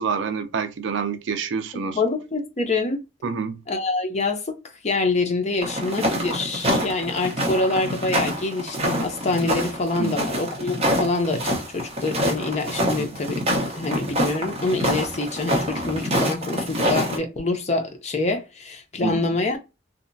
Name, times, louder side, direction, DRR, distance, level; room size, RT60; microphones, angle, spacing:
voice 1, 0.0-2.0 3.2-3.6 10.0-10.2 13.0-13.1 19.0-19.3, right 5 dB, 65° right, 0.4 m, -27 dB
voice 2, 1.7-3.0 3.7-4.6 4.8-13.4 13.8-19.6, left 3 dB, 35° left, 0.6 m, -26 dB
sound 1, 5.6-17.2, equal, 35° right, 0.7 m, -25 dB
2.8 x 2.1 x 2.5 m
head